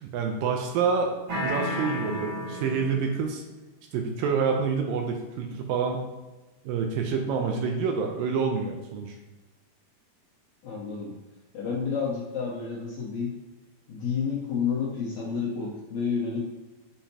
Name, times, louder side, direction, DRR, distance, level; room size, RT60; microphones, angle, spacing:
voice 1, 0.0-3.4 3.9-6.0 6.6-9.1, right 5 dB, 80° right, 3 dB, 2.2 m, -27 dB
sound 1, 1.3-3.2, left 1 dB, 45° right, 2.1 m, -32 dB
voice 2, 10.6-11.1 11.5-13.3 13.9-16.5, left 6 dB, 65° left, -5 dB, 2.1 m, -30 dB
6.5 x 5.7 x 2.8 m, 1.1 s
omnidirectional pair, 4.3 m